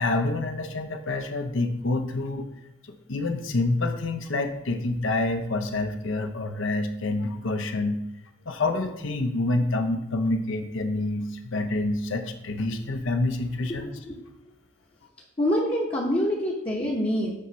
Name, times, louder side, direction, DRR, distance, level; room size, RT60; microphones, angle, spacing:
voice 1, 0.0-2.5 2.9-8.0 8.5-13.9, left 2 dB, 70° left, 7 dB, 0.7 m, -27 dB
voice 2, 13.8-14.2 15.4-17.3, equal, 25° left, -4 dB, 0.9 m, -26 dB
8.4 x 3.1 x 5.6 m, 0.87 s
head